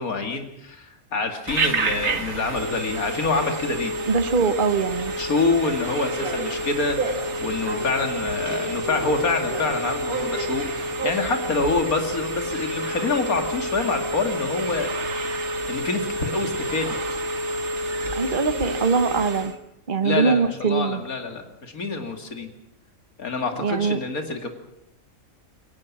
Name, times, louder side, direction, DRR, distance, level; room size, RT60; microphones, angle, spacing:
voice 1, 0.0-3.9 5.2-14.9 15.7-17.0 20.0-22.5 23.2-24.5, left 3 dB, 85° left, 5 dB, 2.8 m, -26 dB
Telephone, 1.5-19.6, right 1 dB, 55° right, 1.9 m, -29 dB
voice 2, 4.1-5.1 18.1-19.5 19.9-21.0 23.6-24.0, right 5 dB, 40° right, 10 dB, 1.3 m, -22 dB
sound 1, 4.1-11.1, right 3 dB, 85° right, 2.8 m, -35 dB
22.5 x 18.5 x 7.4 m, 0.82 s
omnidirectional pair, 1.5 m